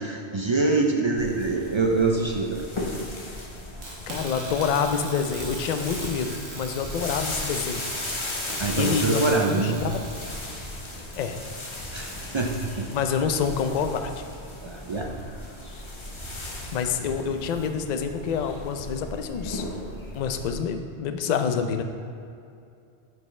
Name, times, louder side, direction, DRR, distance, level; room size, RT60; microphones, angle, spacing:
voice 1, 0.0-2.7 8.6-9.8 11.9-12.9 14.6-15.1, right 3 dB, 50° right, 1 dB, 0.3 m, -25 dB
sound 1, 1.2-20.5, left 1 dB, 30° left, 0.9 m, -36 dB
sound 2, 3.8-10.4, right 2 dB, 80° right, 1.6 m, -40 dB
voice 2, 4.1-7.8 8.8-10.0 11.1-11.4 12.9-14.2 16.7-19.6 20.1-21.8, left 6 dB, 55° left, 7 dB, 0.5 m, -27 dB
9.0 x 5.4 x 3.2 m, 2.5 s
omnidirectional pair, 1.1 m